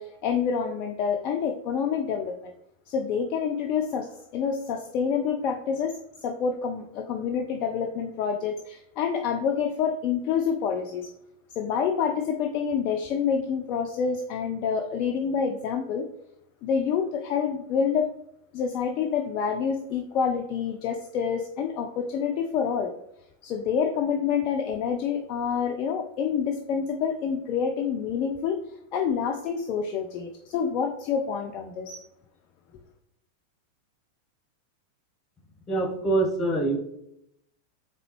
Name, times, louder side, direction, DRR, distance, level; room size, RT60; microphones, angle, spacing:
voice 1, 0.0-2.5 2.9-5.9 6.2-11.1 11.6-16.1 16.6-18.1 18.5-22.9 23.4-28.6 28.9-32.0, left 6 dB, 40° left, 4 dB, 0.3 m, -27 dB
voice 2, 35.7-36.8, right 2 dB, 25° left, 3 dB, 1.0 m, -24 dB
3.9 x 3.3 x 2.9 m, 0.78 s
figure-of-eight pair, 90°, 0 cm